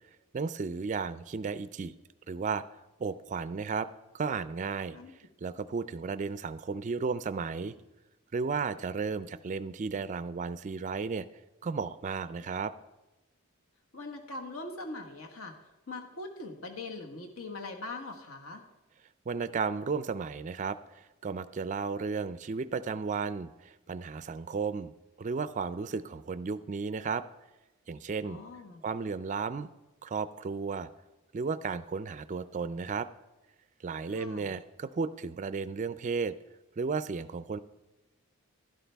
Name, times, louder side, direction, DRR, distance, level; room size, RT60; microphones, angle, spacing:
voice 1, 0.3-1.9 2.3-2.6 3.0-3.9 4.1-5.0 5.4-7.7 8.3-11.3 11.6-12.7 19.3-24.9 25.2-27.2 27.9-28.4 28.8-29.7 30.0-30.9 31.3-33.1 33.8-36.3 36.8-37.6, right 5 dB, 35° right, 14 dB, 0.3 m, -34 dB
voice 2, 13.9-15.5 15.9-18.6 28.2-28.8 34.1-34.5, left 2 dB, 70° left, 3 dB, 1.3 m, -41 dB
12.0 x 11.5 x 3.4 m, 1.1 s
head